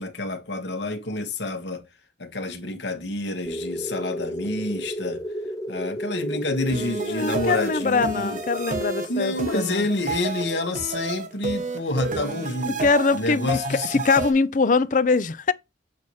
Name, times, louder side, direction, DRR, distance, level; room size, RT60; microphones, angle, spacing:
voice 1, 0.0-1.8 2.2-5.2 5.7-8.4 9.1-12.8 13.1-14.0, left 2 dB, 90° left, 1.5 m, -28 dB
sound 1, 3.4-11.8, equal, 20° left, 1.1 m, -33 dB
sound 2, 6.7-14.3, right 3 dB, 45° right, 1.2 m, -31 dB
voice 2, 7.1-9.9 12.7-13.6 13.9-15.5, left 4 dB, 45° left, 0.5 m, -22 dB
7.5 x 2.8 x 4.7 m
head